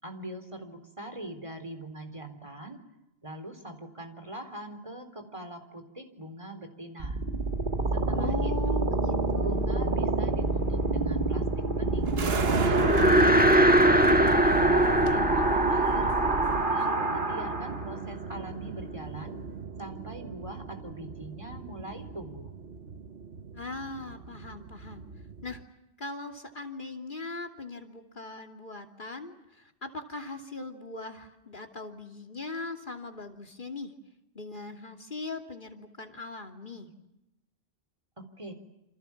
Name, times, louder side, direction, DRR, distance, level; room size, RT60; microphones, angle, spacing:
voice 1, 0.0-2.8 3.2-7.2 7.9-9.0 9.4-13.1 13.6-16.1 16.7-19.4 19.8-22.5 38.2-38.5, right 1 dB, 30° right, 7 dB, 4.0 m, -42 dB
sound 1, 7.0-18.0, right 2 dB, 50° right, 2.1 m, -28 dB
voice 2, 8.1-9.9 23.5-25.0 25.4-25.6 26.0-33.9 34.3-36.9, left 3 dB, 50° left, 4 dB, 3.0 m, -40 dB
sound 2, 12.1-25.6, right 5 dB, 65° right, 1.4 m, -34 dB
sound 3, 12.5-17.9, equal, 10° right, 1.4 m, -23 dB
29.0 x 27.0 x 7.2 m, 0.88 s
omnidirectional pair, 1.1 m